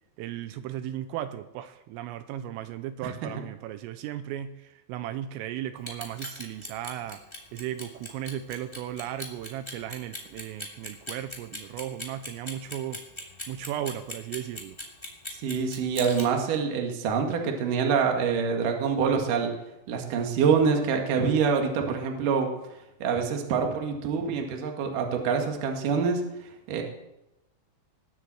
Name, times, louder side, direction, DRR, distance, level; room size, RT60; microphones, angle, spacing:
voice 1, 0.2-7.2 7.5-13.0 13.5-14.8, right 11 dB, 85° right, 10 dB, 3.3 m, -36 dB
Clock, 5.8-16.2, left 1 dB, 10° left, 1.5 m, -39 dB
voice 2, 15.4-19.5 19.9-22.5 23.0-26.2 26.7-26.8, right 6 dB, 55° right, 3 dB, 2.8 m, -25 dB
19.5 x 8.2 x 7.6 m, 0.92 s
omnidirectional pair, 5.9 m